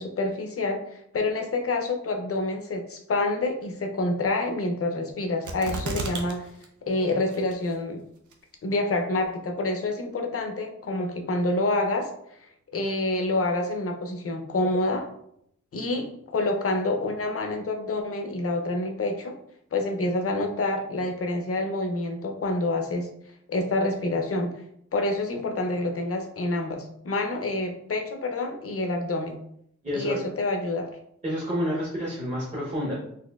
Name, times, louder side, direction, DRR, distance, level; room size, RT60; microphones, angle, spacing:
voice 1, 0.0-6.6 6.9-8.0 8.6-12.1 12.7-15.1 15.7-19.4 19.7-23.1 23.5-24.5 24.9-29.4 29.9-30.9, left 2 dB, 50° left, 4 dB, 0.5 m, -27 dB
sound 1, 5.5-6.3 6.6-6.7 7.3-7.8 8.3-8.4, right 3 dB, 90° right, 0.6 m, -32 dB
voice 2, 29.8-30.2 31.2-32.9, equal, 25° right, -7 dB, 0.8 m, -29 dB
4.1 x 2.6 x 2.3 m, 0.72 s
wide cardioid pair, 135°, 29 cm